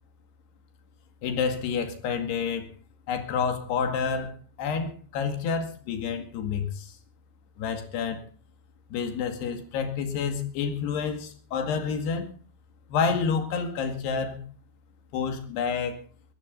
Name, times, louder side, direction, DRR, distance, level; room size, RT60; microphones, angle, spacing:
voice 1, 1.2-2.7 3.1-6.9 7.6-8.2 8.9-12.3 12.9-14.4 15.1-16.0, left 6 dB, 85° left, 4.2 m, -29 dB
21.0 x 15.5 x 4.0 m
omnidirectional pair, 4.6 m